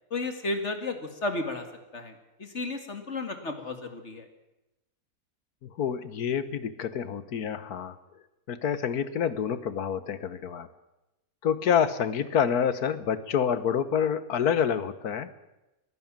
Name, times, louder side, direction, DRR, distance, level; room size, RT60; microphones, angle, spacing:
voice 1, 0.1-1.6 1.9-2.1 2.4-4.3, left 2 dB, 50° left, 7 dB, 2.5 m, -33 dB
voice 2, 5.6-7.9 8.5-10.7 11.4-15.3, left 8 dB, 80° left, 14 dB, 1.7 m, -27 dB
22.0 x 15.5 x 7.5 m, 0.97 s
omnidirectional pair, 1.6 m